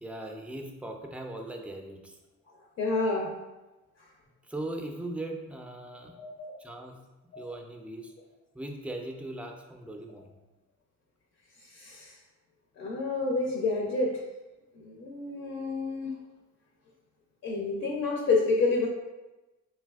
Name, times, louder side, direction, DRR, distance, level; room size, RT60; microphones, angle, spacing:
voice 1, 0.0-2.2 4.4-6.2 6.6-7.0 7.3-8.1 8.5-10.3, right 1 dB, 5° right, 2 dB, 0.3 m, -39 dB
voice 2, 2.8-3.3 6.2-6.6 7.3-7.5 11.7-12.1 12.8-14.2 14.7-16.1 17.4-18.9, left 3 dB, 60° left, -1 dB, 0.6 m, -29 dB
3.3 x 2.6 x 2.3 m, 1.1 s
cardioid pair, 90°, 30 cm